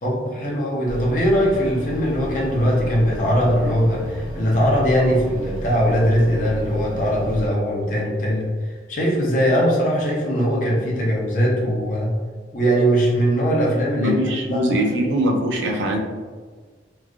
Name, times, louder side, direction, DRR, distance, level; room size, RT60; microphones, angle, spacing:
voice 1, 0.0-12.1 12.5-14.2 14.5-15.1, equal, 45° left, -4 dB, 0.6 m, -20 dB
sound 1, 0.9-7.5, equal, 40° right, 1.1 m, -33 dB
voice 2, 14.0-16.0, equal, 90° right, 1 dB, 0.5 m, -22 dB
3.1 x 2.4 x 2.4 m, 1.5 s
head